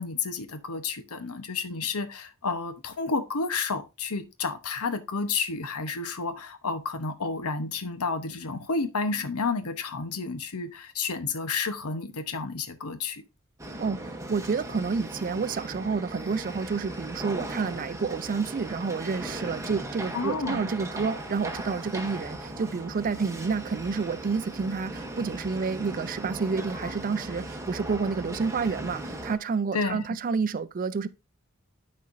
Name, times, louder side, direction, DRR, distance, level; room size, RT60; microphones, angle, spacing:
voice 1, 0.0-13.2 20.1-20.6 29.7-30.2, left 4 dB, 90° left, 0.9 m, -31 dB
sound 1, 13.6-29.4, right 1 dB, 15° right, 0.8 m, -38 dB
voice 2, 13.8-31.1, right 5 dB, 40° right, 0.4 m, -29 dB
12.0 x 4.3 x 2.6 m
head